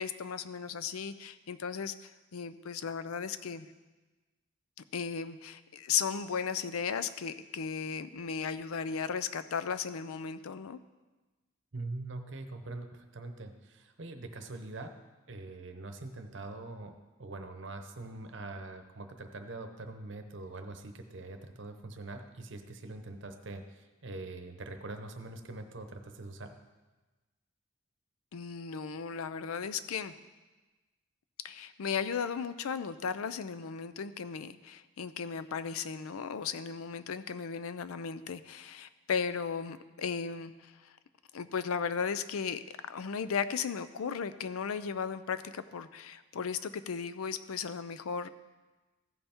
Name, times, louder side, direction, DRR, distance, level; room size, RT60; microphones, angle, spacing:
voice 1, 0.0-3.7 4.9-10.8 28.3-30.1 31.4-40.9 41.3-48.3, left 6 dB, 85° left, 13 dB, 0.5 m, -36 dB
voice 2, 11.7-14.9 15.3-26.5, right 2 dB, 60° right, 6 dB, 0.8 m, -43 dB
15.0 x 5.5 x 4.4 m, 1.2 s
head